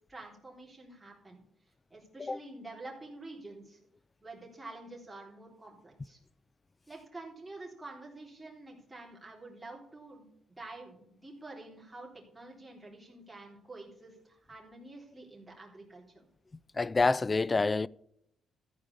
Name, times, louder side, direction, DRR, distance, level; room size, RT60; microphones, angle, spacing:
voice 1, 0.1-1.4 1.9-3.8 4.2-6.2 6.9-16.3, right 2 dB, 15° right, 3.6 m, -48 dB
voice 2, 16.7-17.9, left 3 dB, 25° left, 0.3 m, -27 dB
14.0 x 4.9 x 8.3 m
cardioid pair, 90°, 0 cm